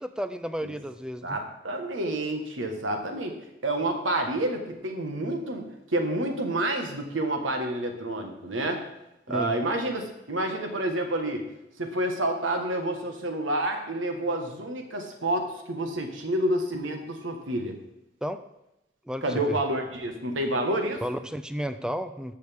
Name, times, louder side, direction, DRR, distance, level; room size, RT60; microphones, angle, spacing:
voice 1, 0.0-1.4 9.3-9.5 18.2-18.4 19.1-19.6 21.0-22.4, equal, 5° right, 10 dB, 0.3 m, -32 dB
voice 2, 1.2-3.3 3.6-8.8 9.3-11.4 11.8-17.8 19.2-21.0, right 1 dB, 80° right, 4 dB, 1.4 m, -29 dB
12.5 x 6.7 x 3.5 m, 0.89 s
head